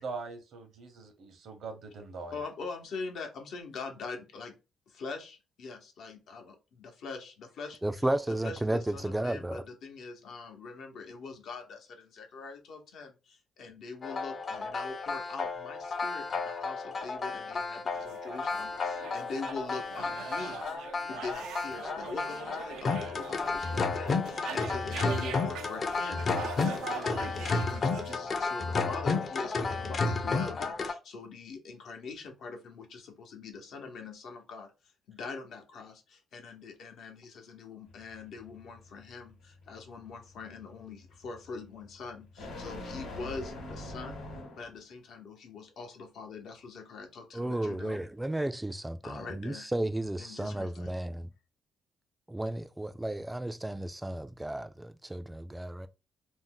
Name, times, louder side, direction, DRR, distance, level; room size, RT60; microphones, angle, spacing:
voice 1, 0.0-2.4, right 4 dB, 70° right, 0.8 m, -42 dB
voice 2, 2.3-4.5 4.9-7.8 8.3-20.6 21.0-34.7 35.1-44.2 44.6-48.0 49.0-49.7 50.2-50.9, left 4 dB, 75° left, 0.8 m, -43 dB
voice 3, 7.8-9.6 47.3-51.3 52.3-55.9, right 1 dB, 10° right, 0.3 m, -33 dB
sound 1, 14.0-30.9, left 4 dB, 45° left, 0.5 m, -32 dB
sound 2, 17.9-28.2, right 8 dB, 85° right, 0.4 m, -43 dB
sound 3, 37.9-44.8, left 1 dB, 90° left, 1.0 m, -45 dB
2.6 x 2.1 x 3.6 m
cardioid pair, 90°, 0 cm